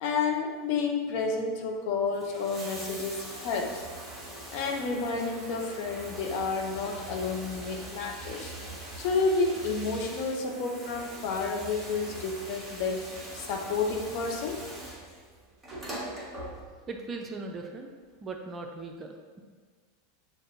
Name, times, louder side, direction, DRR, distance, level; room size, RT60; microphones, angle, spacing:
voice 1, 0.0-3.8 4.5-8.5 9.0-14.6, left 4 dB, 55° left, 2 dB, 0.6 m, -30 dB
Bathtub (filling or washing), 2.0-17.0 18.1-18.2, right 1 dB, 15° right, 1.3 m, -42 dB
voice 2, 16.9-17.9 18.2-19.4, right 3 dB, 30° right, 3 dB, 0.5 m, -39 dB
6.5 x 2.6 x 2.6 m, 1.5 s
hypercardioid pair, 95°, 0 cm